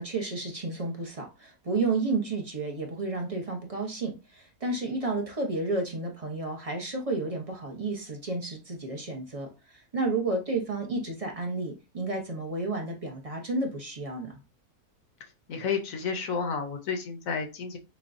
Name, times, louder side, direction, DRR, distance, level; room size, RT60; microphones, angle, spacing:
voice 1, 0.0-14.4, right 3 dB, 30° right, 0 dB, 0.7 m, -31 dB
voice 2, 15.5-17.8, left 5 dB, 60° left, 4 dB, 1.1 m, -31 dB
6.8 x 2.3 x 2.6 m, 0.29 s
omnidirectional pair, 1.7 m